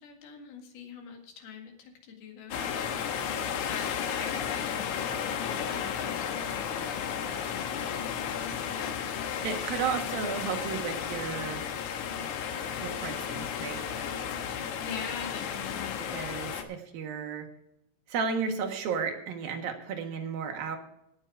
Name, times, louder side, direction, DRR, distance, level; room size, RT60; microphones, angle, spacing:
voice 1, 0.0-3.3 3.7-9.0 14.8-16.0, left 6 dB, 85° left, 3 dB, 3.9 m, -44 dB
sound 1, 2.5-16.6, left 8 dB, 65° left, 2.2 m, -33 dB
voice 2, 9.4-11.7 12.8-13.8 16.1-17.5 18.1-20.8, right 6 dB, 75° right, 4 dB, 3.3 m, -33 dB
18.0 x 6.7 x 4.7 m, 0.78 s
omnidirectional pair, 4.3 m